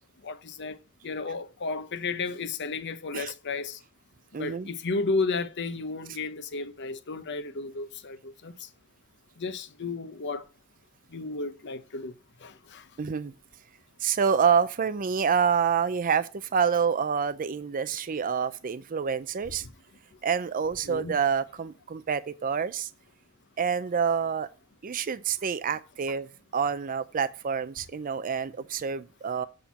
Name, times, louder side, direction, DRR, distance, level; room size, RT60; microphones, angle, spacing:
voice 1, 0.2-0.8 1.0-3.8 4.4-8.5 9.4-10.4 11.1-12.1 12.4-12.8 19.6-19.7 20.8-21.1, left 3 dB, 55° left, 0.8 m, -33 dB
voice 2, 4.3-4.7 13.0-13.3 14.0-19.6 20.2-22.9 23.6-24.5 24.8-29.5, right 6 dB, 40° right, 0.4 m, -27 dB
7.8 x 4.4 x 6.9 m
head